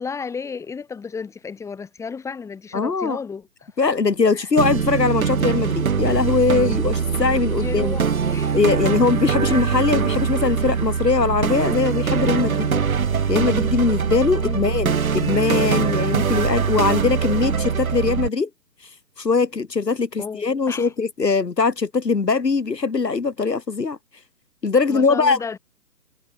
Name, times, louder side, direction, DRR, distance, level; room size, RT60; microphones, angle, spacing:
voice 1, 0.0-3.8 4.3-4.5 7.6-8.7 9.5-9.7 14.4-14.8 20.2-20.9 24.9-25.6, left 5 dB, 5° left, 7.1 m, -33 dB
voice 2, 2.7-3.2 3.8-8.0 8.5-12.8 13.3-18.5 19.2-24.0 24.6-25.4, left 4 dB, 80° left, 1.4 m, -21 dB
sound 1, 4.6-18.3, right 6 dB, 60° right, 1.3 m, -22 dB
figure-of-eight pair, 140°, 48 cm